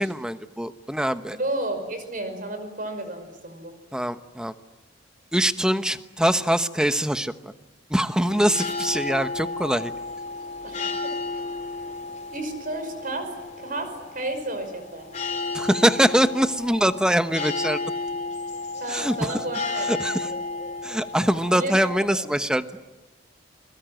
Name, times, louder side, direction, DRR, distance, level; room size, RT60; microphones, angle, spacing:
voice 1, 0.0-1.4 3.9-4.5 5.3-7.5 7.9-9.9 15.5-17.8 18.9-19.3 19.9-20.3 20.8-22.7, equal, 5° right, 10 dB, 1.0 m, -23 dB
voice 2, 1.4-3.7 10.6-11.1 12.3-13.3 13.6-15.1 18.8-19.9 20.2-20.3 21.5-21.7, right 1 dB, 50° right, 8 dB, 5.5 m, -32 dB
sound 1, 8.2-21.9, left 3 dB, 40° left, 4.7 m, -33 dB
28.5 x 21.5 x 9.1 m, 1.1 s
head